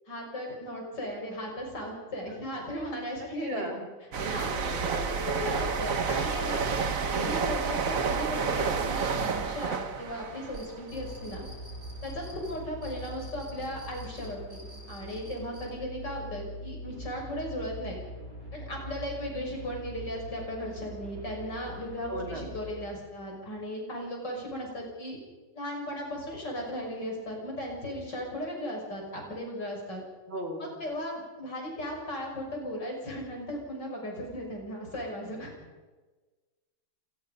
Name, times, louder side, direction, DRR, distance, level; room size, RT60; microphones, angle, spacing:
voice 1, 0.1-3.7 4.3-4.5 4.9-6.7 7.2-11.5 12.0-18.0 18.5-25.2 25.5-30.0 30.6-35.5, equal, 65° left, 0 dB, 7.1 m, -36 dB
voice 2, 2.3-2.6 3.2-3.9 4.1-5.2 7.1-7.5 22.1-22.6 30.3-30.8, right 1 dB, 80° right, 2 dB, 4.4 m, -38 dB
sound 1, 4.1-11.6 11.9-12.2, right 5 dB, 50° right, 1.6 m, -30 dB
sound 2, 10.3-15.6, equal, 25° right, 7.9 m, -52 dB
sound 3, 10.9-22.9, equal, 45° left, 8.6 m, -43 dB
27.0 x 19.5 x 5.4 m, 1.3 s
omnidirectional pair, 2.1 m